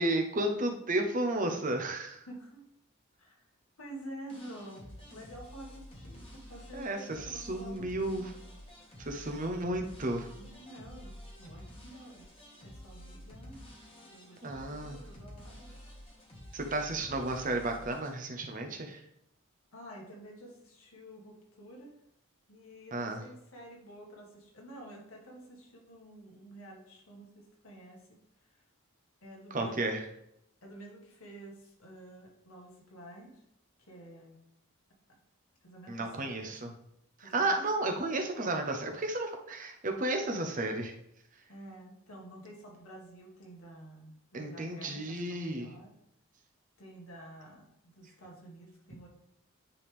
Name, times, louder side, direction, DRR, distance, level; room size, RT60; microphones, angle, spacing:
voice 1, 0.0-2.2 6.7-8.3 9.0-10.3 14.4-15.0 16.5-19.0 22.9-23.2 29.5-30.0 35.9-36.7 37.2-40.9 44.3-45.7, right 2 dB, 35° right, 4 dB, 0.7 m, -33 dB
voice 2, 2.3-2.6 3.2-3.4 3.8-8.2 10.3-11.1 11.4-12.3 12.6-13.7 14.1-15.7 19.7-21.9 22.5-28.6 29.2-30.0 30.6-33.4 33.9-34.4 35.1-35.2 35.6-36.5 37.2-37.5 41.5-45.9 46.8-49.1, right 1 dB, 85° left, -1 dB, 1.8 m, -50 dB
sound 1, 4.3-18.1, equal, 25° left, 1.5 m, -50 dB
9.3 x 3.5 x 3.5 m, 0.75 s
head